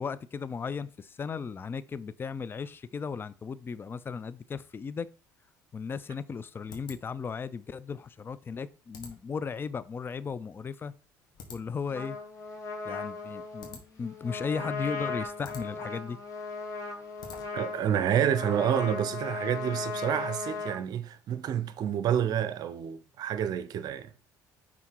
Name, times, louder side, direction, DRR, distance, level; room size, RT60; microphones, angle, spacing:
voice 1, 0.0-5.1 5.7-10.9 11.5-12.2 12.8-16.2, left 5 dB, 30° left, 0.5 m, -36 dB
sound 1, 5.6-17.8, left 5 dB, 60° left, 1.8 m, -53 dB
Trumpet, 11.9-20.8, left 4 dB, 45° left, 2.2 m, -37 dB
voice 2, 17.5-24.1, right 9 dB, 55° right, 0.7 m, -29 dB
5.7 x 3.6 x 4.6 m
supercardioid pair, 85°, 8 cm